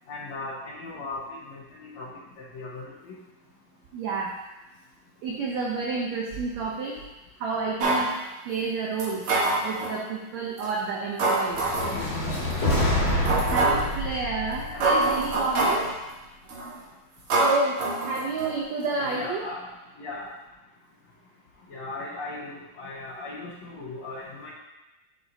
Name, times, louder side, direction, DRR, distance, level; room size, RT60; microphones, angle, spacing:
voice 1, 0.1-2.1 2.5-2.9 12.5-12.6 13.4-13.9 14.7-14.8 19.0-19.7 20.0-20.3 21.7-24.5, left 3 dB, 70° left, -5 dB, 1.8 m, -38 dB
voice 2, 3.9-4.3 5.2-7.0 7.4-8.1 8.4-9.2 9.6-11.6 13.5-15.9 17.4-19.4, right 4 dB, 85° right, -2 dB, 1.5 m, -30 dB
sound 1, 7.8-8.1 9.0-10.0 10.6-10.7 11.2-12.0 12.5-12.6 13.3-13.9 14.5-14.6 14.8-15.9 16.5-16.8 17.3-18.5 18.8-18.9, right 2 dB, 60° right, 1.5 m, -25 dB
sound 2, 11.5-15.8, left 1 dB, 35° left, 2.4 m, -27 dB
7.5 x 6.3 x 2.7 m, 1.0 s
omnidirectional pair, 4.0 m